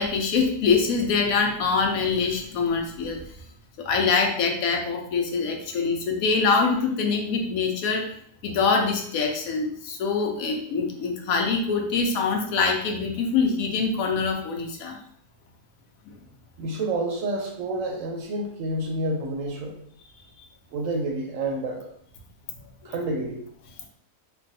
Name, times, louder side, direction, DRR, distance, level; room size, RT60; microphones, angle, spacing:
voice 1, 0.0-3.2 3.8-8.1 8.4-15.0 22.6-22.9, left 4 dB, 75° left, 3 dB, 1.0 m, -24 dB
voice 2, 16.6-19.7 20.7-21.9 22.8-23.4, right 2 dB, 70° right, 2 dB, 0.9 m, -29 dB
3.2 x 2.2 x 2.6 m, 0.65 s
omnidirectional pair, 1.6 m